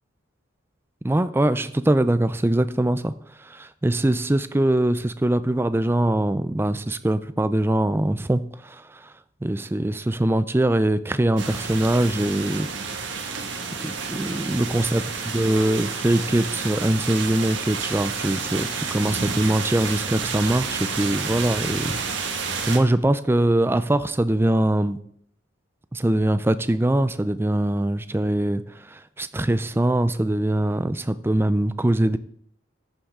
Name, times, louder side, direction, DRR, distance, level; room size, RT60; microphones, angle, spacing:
voice 1, 1.0-3.1 3.4-9.1 9.4-13.3 13.8-15.0 15.3-25.0 25.9-32.2, right 1 dB, 10° right, 13 dB, 0.4 m, -23 dB
sound 1, 11.4-22.8, right 5 dB, 65° right, 1.7 m, -30 dB
14.0 x 10.0 x 3.7 m, 0.65 s
head